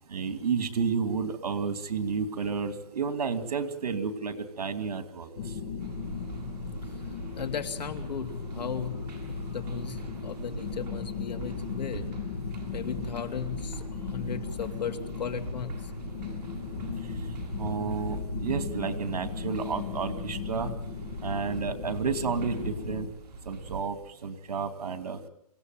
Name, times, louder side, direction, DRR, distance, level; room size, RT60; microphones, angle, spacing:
voice 1, 0.1-5.3 17.6-20.7 21.2-23.1 23.5-25.2, right 5 dB, 65° right, 10 dB, 2.6 m, -31 dB
sound 1, 5.4-23.1, left 5 dB, 45° left, 1.8 m, -37 dB
sound 2, 5.8-23.8, right 4 dB, 30° right, 7.2 m, -43 dB
voice 2, 7.4-8.9 9.3-12.0 12.7-15.7, left 6 dB, 90° left, 8 dB, 3.0 m, -36 dB
27.0 x 17.0 x 9.3 m, 0.82 s
hypercardioid pair, 180°, 21 cm